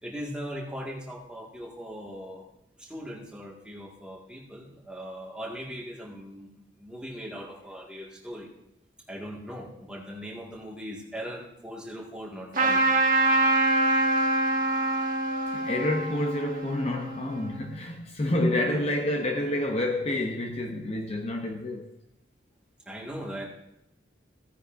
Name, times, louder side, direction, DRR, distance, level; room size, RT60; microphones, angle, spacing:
voice 1, 0.0-2.5 2.8-6.5 6.8-8.5 9.1-12.8 18.6-18.8 22.9-23.4, equal, 5° right, 1.8 m, -39 dB
Trumpet, 12.5-17.6, right 2 dB, 50° right, 1.5 m, -25 dB
voice 2, 15.0-21.9, left 1 dB, 35° left, 0.7 m, -29 dB
15.5 x 9.7 x 2.6 m
head